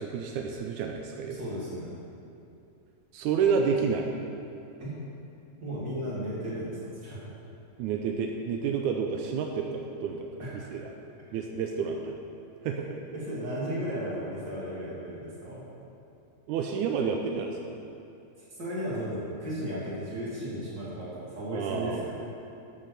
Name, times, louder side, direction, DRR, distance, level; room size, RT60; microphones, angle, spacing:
voice 1, 0.0-1.4 3.1-4.1 7.8-10.9 11.3-12.2 12.6-12.9 16.5-17.8 21.5-22.1, right 6 dB, 85° right, 2 dB, 2.1 m, -30 dB
voice 2, 1.3-1.9 4.8-4.9 5.6-7.2 10.4-10.7 13.1-15.6 18.5-22.1, equal, 35° right, -8 dB, 3.3 m, -35 dB
12.5 x 5.7 x 6.7 m, 2.6 s
omnidirectional pair, 3.5 m